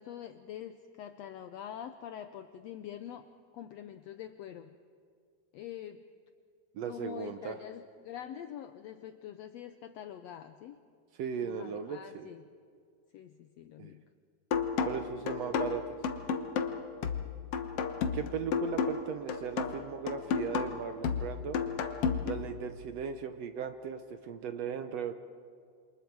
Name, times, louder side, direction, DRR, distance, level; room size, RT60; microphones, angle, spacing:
voice 1, 0.0-3.3 3.5-4.8 5.5-6.1 6.9-10.8 11.4-12.4 13.1-14.0, left 10 dB, 80° left, 9 dB, 1.5 m, -45 dB
voice 2, 6.7-7.6 11.2-12.3 13.8-13.9 14.8-16.0 18.1-21.6 22.2-25.1, right 7 dB, 70° right, 8 dB, 1.6 m, -37 dB
sound 1, 14.5-22.5, left 6 dB, 60° left, 1.8 m, -33 dB
27.5 x 27.0 x 4.7 m, 2.2 s
omnidirectional pair, 3.7 m